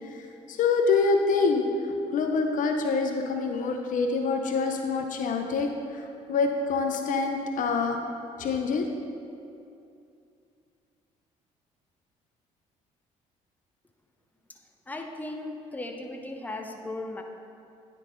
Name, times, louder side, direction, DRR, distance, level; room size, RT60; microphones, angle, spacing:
voice 1, 0.1-8.0 8.4-8.9, left 4 dB, 55° left, 4 dB, 0.5 m, -26 dB
voice 2, 14.9-17.2, left 2 dB, 10° left, 3 dB, 0.7 m, -37 dB
9.5 x 3.8 x 3.8 m, 2.6 s
hypercardioid pair, 60°, 16 cm